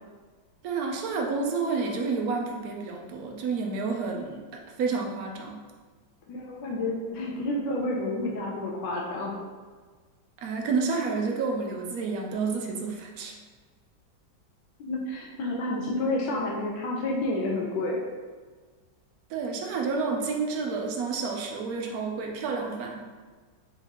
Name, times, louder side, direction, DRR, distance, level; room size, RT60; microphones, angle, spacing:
voice 1, 0.6-4.4 4.8-5.6 10.4-13.3 19.3-23.0, right 4 dB, 65° right, 1 dB, 1.0 m, -30 dB
voice 2, 6.3-9.4 14.8-18.0, left 2 dB, 80° left, -2 dB, 1.4 m, -30 dB
4.5 x 3.9 x 2.9 m, 1.4 s
omnidirectional pair, 1.9 m